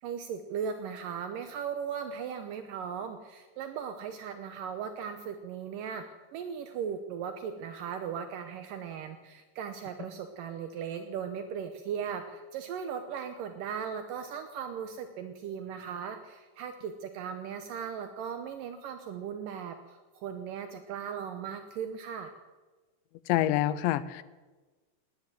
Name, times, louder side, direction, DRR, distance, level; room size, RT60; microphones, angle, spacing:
voice 1, 0.0-6.0 6.3-22.3, right 7 dB, 90° right, 8 dB, 1.9 m, -38 dB
voice 2, 23.3-24.2, left 13 dB, 85° left, 16 dB, 3.0 m, -26 dB
18.5 x 9.9 x 7.6 m, 1.3 s
omnidirectional pair, 5.1 m